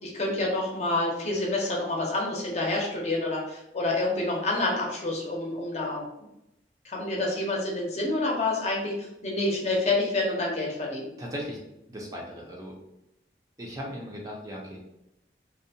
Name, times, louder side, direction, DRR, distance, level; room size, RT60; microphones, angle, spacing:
voice 1, 0.0-6.0 6.8-11.1, left 2 dB, 40° left, -2 dB, 0.6 m, -28 dB
voice 2, 11.2-11.6 11.9-12.7 13.6-14.8, equal, 20° right, -2 dB, 0.4 m, -37 dB
2.6 x 2.1 x 2.7 m, 0.85 s
head